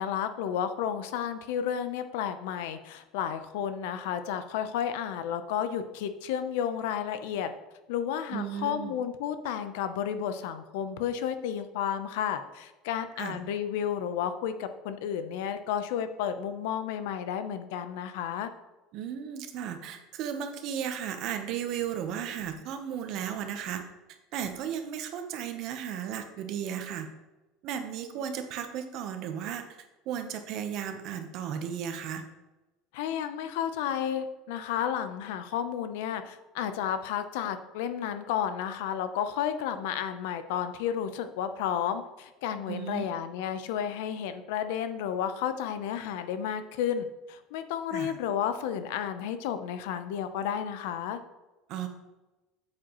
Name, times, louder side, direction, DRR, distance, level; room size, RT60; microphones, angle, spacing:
voice 1, 0.0-7.5 7.9-18.5 32.9-51.2, left 9 dB, 75° left, 10 dB, 0.7 m, -32 dB
voice 2, 8.3-8.9 13.2-13.4 18.9-23.8 24.3-27.1 27.6-29.6 30.1-32.2 42.7-43.0 47.9-48.1 51.7-51.9, right 8 dB, 45° right, 7 dB, 0.9 m, -35 dB
8.7 x 7.5 x 3.0 m, 1.1 s
cardioid pair, 175°, 0 cm